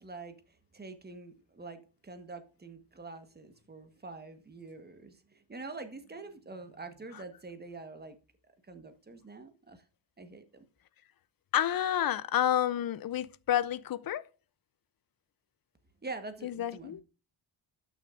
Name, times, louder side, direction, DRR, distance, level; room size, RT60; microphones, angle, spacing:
voice 1, 0.0-8.2 8.7-9.8 10.2-10.6 16.0-17.0, right 3 dB, 20° right, 1.3 m, -45 dB
voice 2, 11.5-14.3 16.4-17.0, left 11 dB, 50° left, 0.5 m, -29 dB
12.5 x 6.4 x 2.5 m
wide cardioid pair, 130°, 46 cm